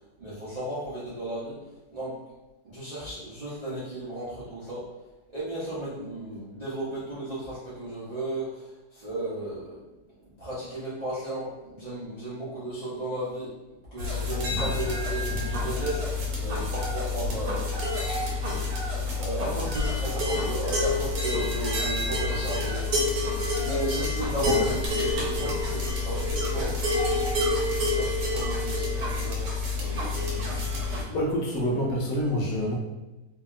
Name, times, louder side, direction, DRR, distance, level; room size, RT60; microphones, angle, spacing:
voice 1, 0.2-1.6 1.9-2.2 2.6-4.9 5.3-9.8 10.4-13.5 13.9-16.1 16.4-17.7 18.2-18.3 19.1-26.8 27.7-30.5, right 1 dB, 45° right, -11 dB, 0.5 m, -34 dB
sound 1, 14.0-31.0, left 2 dB, 70° right, 1.2 m, -28 dB
voice 2, 31.1-32.7, equal, 70° left, -3 dB, 1.0 m, -27 dB
2.8 x 2.8 x 2.4 m, 1.1 s
omnidirectional pair, 1.9 m